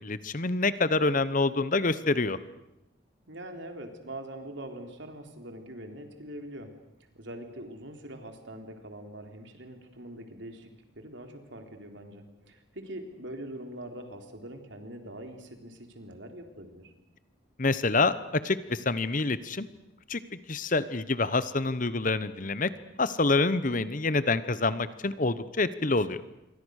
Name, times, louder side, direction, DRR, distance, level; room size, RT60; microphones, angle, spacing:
voice 1, 0.0-2.4 17.6-19.7 20.1-20.2 20.5-22.7 23.0-26.2, left 3 dB, 40° left, 15 dB, 1.0 m, -27 dB
voice 2, 3.3-6.7 7.2-10.7 11.0-16.9, right 1 dB, 65° right, 5 dB, 3.8 m, -43 dB
27.5 x 24.0 x 6.6 m, 0.90 s
head